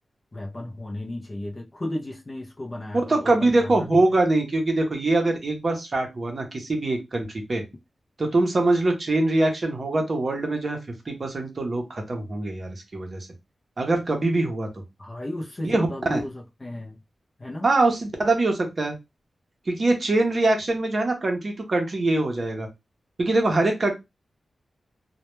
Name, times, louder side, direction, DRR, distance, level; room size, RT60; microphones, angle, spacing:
voice 1, 0.3-3.9 15.0-17.0 17.4-17.7, left 1 dB, 25° left, 0.4 m, -34 dB
voice 2, 3.1-7.6 8.2-10.8 11.1-13.3 13.8-14.8 15.6-16.2 17.6-18.9 19.7-22.7 23.2-23.9, right 2 dB, 40° right, 0.6 m, -23 dB
2.1 x 2.1 x 2.9 m
wide cardioid pair, 160°, 0 cm